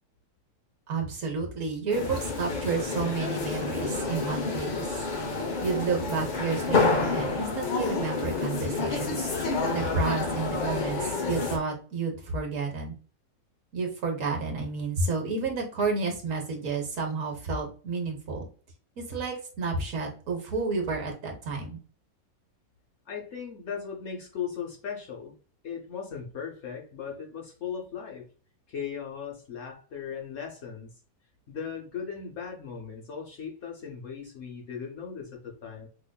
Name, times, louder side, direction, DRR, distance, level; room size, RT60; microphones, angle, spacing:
voice 1, 0.9-4.9 5.6-9.4 9.7-12.9 13.7-18.5 19.0-21.8, right 4 dB, 60° right, 2 dB, 1.2 m, -31 dB
sound 1, 1.9-11.6, left 3 dB, 80° left, 0.4 m, -29 dB
voice 2, 23.1-25.3 25.6-28.3 28.7-30.9 31.5-35.9, left 7 dB, 55° left, 0 dB, 0.9 m, -38 dB
4.9 x 2.4 x 2.2 m, 0.39 s
omnidirectional pair, 1.6 m